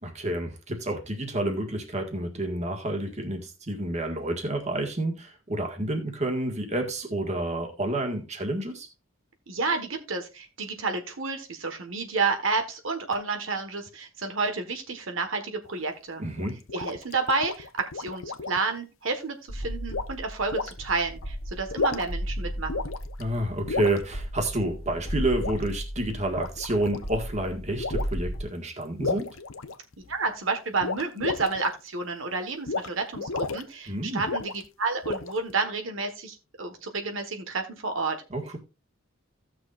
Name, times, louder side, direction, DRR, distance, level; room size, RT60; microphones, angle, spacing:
voice 1, 0.0-8.9 16.2-16.6 23.2-29.4 33.9-34.2 38.3-38.6, right 1 dB, 35° right, 1.7 m, -29 dB
voice 2, 9.5-16.2 16.7-22.8 30.1-38.2, right 3 dB, 70° right, 1.5 m, -30 dB
sound 1, 16.4-18.7 19.9-20.1 20.5-20.7 21.6-22.2 22.7-23.2 23.7-24.0 25.4-25.6 26.2-27.1 27.8-28.1 29.0-30.1 30.8-31.7 32.7-32.9 33.1-33.6 34.2-34.6 35.0-35.5, left 3 dB, 85° left, 0.8 m, -32 dB
sound 2, 19.5-28.5, equal, 65° left, 1.6 m, -35 dB
16.0 x 6.4 x 2.5 m
head